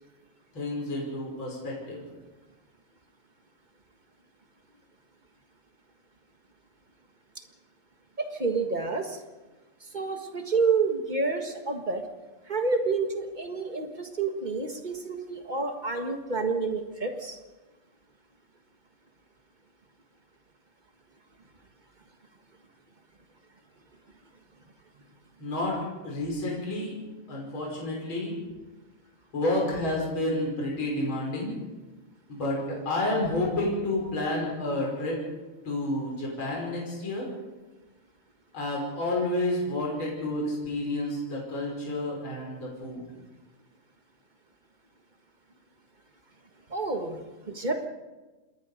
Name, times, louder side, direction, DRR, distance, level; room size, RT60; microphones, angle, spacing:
voice 1, 0.5-2.0 25.4-26.9 27.3-28.3 29.3-31.5 32.3-35.2 35.6-37.3 38.5-43.1, left 1 dB, 40° left, -2 dB, 6.6 m, -30 dB
voice 2, 8.2-9.2 9.8-12.0 12.5-17.4 46.7-47.2 47.5-47.9, right 4 dB, 30° right, 5 dB, 0.9 m, -29 dB
27.5 x 20.5 x 5.1 m, 1.2 s
omnidirectional pair, 3.4 m